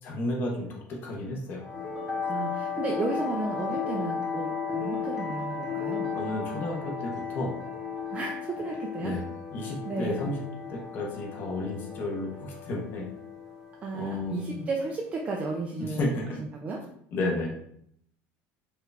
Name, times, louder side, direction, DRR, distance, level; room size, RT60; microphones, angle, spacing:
voice 1, 0.0-1.6 6.1-7.5 9.0-9.2 9.5-10.4 10.7-13.1 13.9-14.7 15.8-16.4 17.1-17.5, left 2 dB, 35° left, -1 dB, 0.9 m, -32 dB
sound 1, 1.6-15.7, left 6 dB, 5° left, 1.0 m, -35 dB
voice 2, 2.3-6.2 8.1-9.1 9.9-10.2 13.8-16.2 16.5-16.8, right 3 dB, 25° right, 0 dB, 0.4 m, -33 dB
4.6 x 2.5 x 3.3 m, 0.69 s
cardioid pair, 170°, 5 cm